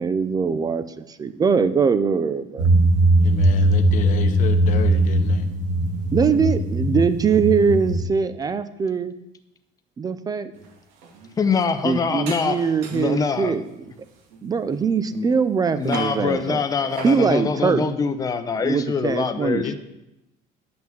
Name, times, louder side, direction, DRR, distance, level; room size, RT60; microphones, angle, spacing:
voice 1, 0.0-2.7 6.1-9.1 10.0-10.5 11.8-13.6 14.4-16.6 17.0-17.8 18.6-19.7, right 5 dB, 20° right, 12 dB, 0.5 m, -22 dB
sound 1, 2.6-8.0, right 1 dB, 45° right, 1.6 m, -19 dB
voice 2, 3.2-5.5 19.6-19.7, left 8 dB, 45° left, 6 dB, 0.9 m, -31 dB
sound 2, 10.5-13.2 13.7-15.5 15.8-16.2 16.9-17.2, right 5 dB, 75° right, 2.5 m, -40 dB
voice 3, 11.4-13.6 15.1-15.3 15.8-19.7, left 5 dB, 20° left, 9 dB, 0.7 m, -24 dB
10.5 x 6.0 x 7.4 m, 0.90 s
cardioid pair, 160°, 18 cm